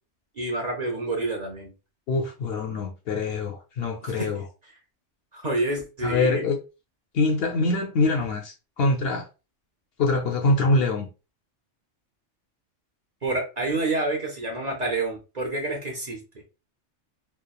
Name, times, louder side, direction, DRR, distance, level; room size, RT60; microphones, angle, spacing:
voice 1, 0.4-1.7 4.1-4.3 5.3-6.4 13.2-16.2, right 2 dB, 45° right, 0.7 m, -28 dB
voice 2, 2.1-4.5 6.0-6.6 7.1-9.3 10.0-11.1, left 3 dB, 65° left, 0.7 m, -24 dB
3.0 x 2.1 x 2.3 m
omnidirectional pair, 1.2 m